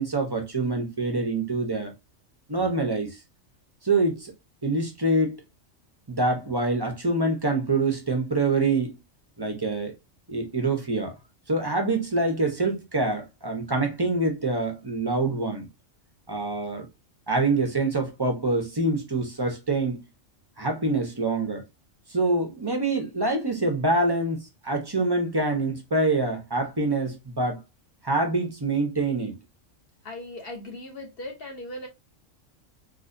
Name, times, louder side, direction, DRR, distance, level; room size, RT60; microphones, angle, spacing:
voice 1, 0.0-1.9 2.5-3.2 3.8-4.3 4.6-5.4 6.1-8.9 9.4-9.9 10.3-11.1 11.5-15.7 16.3-16.9 17.3-20.0 20.6-21.6 22.1-27.6 28.0-29.4, right 2 dB, 30° right, 0.5 m, -25 dB
voice 2, 30.0-31.9, left 1 dB, 50° left, 1.0 m, -38 dB
3.9 x 2.5 x 2.5 m
omnidirectional pair, 1.3 m